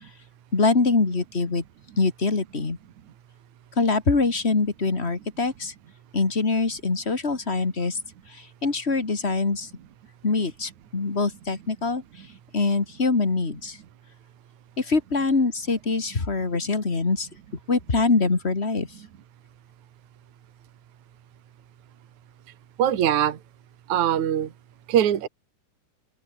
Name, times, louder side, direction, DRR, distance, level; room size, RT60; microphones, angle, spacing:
voice 1, 0.5-1.6 2.0-2.8 3.8-5.7 6.1-8.0 8.3-9.7 10.2-12.0 12.5-13.8 14.8-17.3 17.7-18.9, left 3 dB, 20° left, 1.9 m, -24 dB
voice 2, 22.8-23.4 23.9-24.5 24.9-25.3, right 10 dB, 60° right, 3.0 m, -21 dB
omnidirectional pair, 4.0 m